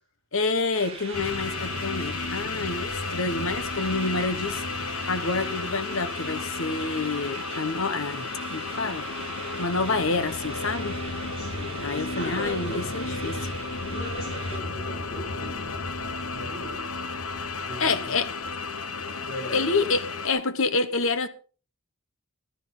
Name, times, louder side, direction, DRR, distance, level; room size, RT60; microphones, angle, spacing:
voice 1, 0.3-9.1 9.6-11.0 11.8-13.5 17.8-18.3 19.5-21.3, left 3 dB, 65° left, 1.3 m, -28 dB
sound 1, 0.7-14.6, right 4 dB, 25° right, 5.6 m, -41 dB
sound 2, 1.1-20.3, left 3 dB, 85° left, 1.2 m, -33 dB
voice 2, 11.3-11.9 12.1-12.8 13.9-16.8 17.5-18.2 19.2-19.7, equal, 45° left, 6.5 m, -38 dB
15.0 x 12.0 x 3.9 m
head